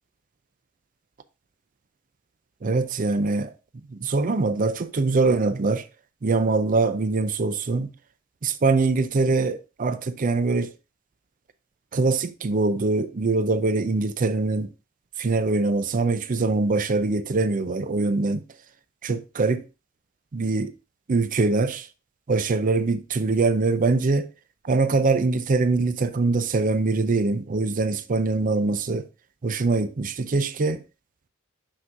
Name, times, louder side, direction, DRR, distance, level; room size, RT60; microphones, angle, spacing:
voice 1, 2.6-3.5 3.9-5.9 6.2-7.9 8.4-10.7 11.9-14.7 15.2-18.4 19.0-19.6 20.3-20.7 21.1-21.9 22.3-24.3 24.6-29.1 29.4-30.8, right 3 dB, 40° right, 0.5 m, -23 dB
6.1 x 6.1 x 2.5 m
head